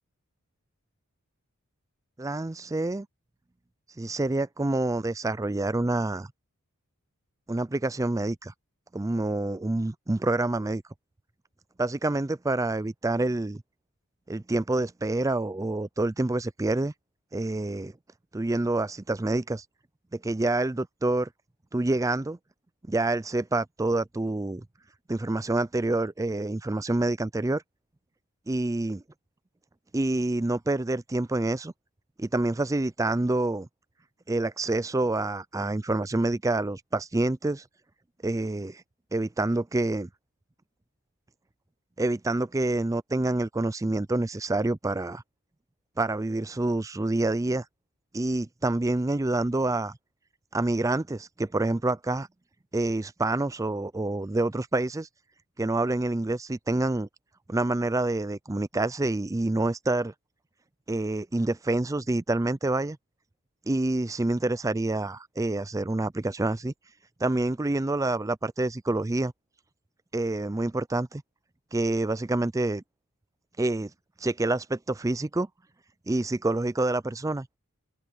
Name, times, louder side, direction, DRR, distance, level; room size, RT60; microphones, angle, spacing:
voice 1, 2.2-3.1 4.0-6.3 7.5-8.5 8.9-10.8 11.8-13.6 14.3-16.9 17.3-17.9 18.3-19.6 20.1-21.3 21.7-22.4 22.9-24.6 25.1-27.6 28.5-29.0 29.9-31.7 32.2-33.7 34.3-37.6 38.2-38.8 39.1-40.1 42.0-45.2 46.0-47.7 48.1-50.0 50.5-52.3 52.7-55.1 55.6-57.1 57.5-60.1 60.9-63.0 63.7-66.7 67.2-69.3 70.1-71.2 71.7-72.8 73.6-73.9 74.2-75.5 76.1-77.5, right 2 dB, 15° right, 0.4 m, -27 dB
head